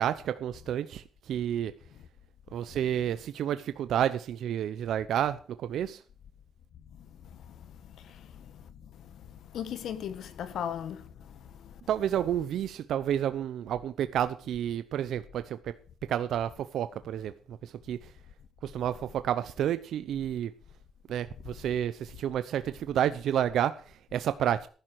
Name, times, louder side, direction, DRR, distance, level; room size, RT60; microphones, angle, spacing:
voice 1, 0.0-1.7 2.5-6.0 11.9-15.8 16.1-18.1 18.6-20.5 21.1-24.7, right 10 dB, 75° right, 0.8 m, -30 dB
voice 2, 6.9-11.8, left 9 dB, 70° left, 1.4 m, -40 dB
14.5 x 11.5 x 4.8 m
cardioid pair, 90°, 0 cm